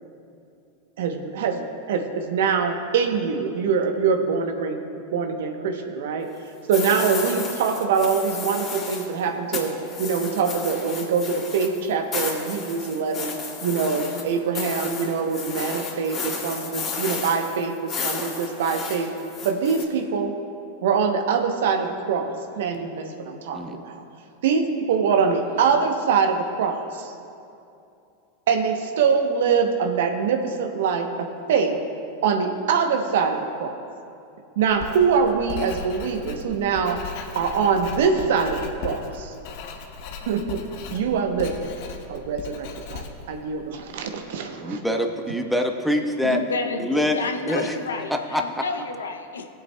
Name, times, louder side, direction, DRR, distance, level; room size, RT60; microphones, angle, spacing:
voice 1, 1.0-4.8 5.1-6.3 6.7-19.1 19.4-20.4 20.8-24.0 24.4-27.1 28.5-31.8 32.2-33.7 34.6-37.0 37.3-39.3 40.3-40.6 40.9-41.7 42.1-44.8, right 6 dB, 70° right, 5 dB, 0.9 m, -24 dB
sound 1, 6.7-9.1 9.5-19.8, left 4 dB, 30° left, 2.5 m, -33 dB
Writing, 34.7-44.1, left 5 dB, 60° left, 1.0 m, -37 dB
voice 2, 44.6-46.4 46.8-47.2 47.5-47.8 48.1-48.6, left 1 dB, ahead, 3 dB, 1.0 m, -24 dB
voice 3, 46.2-49.5, left 4 dB, 85° left, 5 dB, 0.6 m, -30 dB
21.0 x 7.5 x 2.3 m, 2.6 s
hypercardioid pair, 100°, 0 cm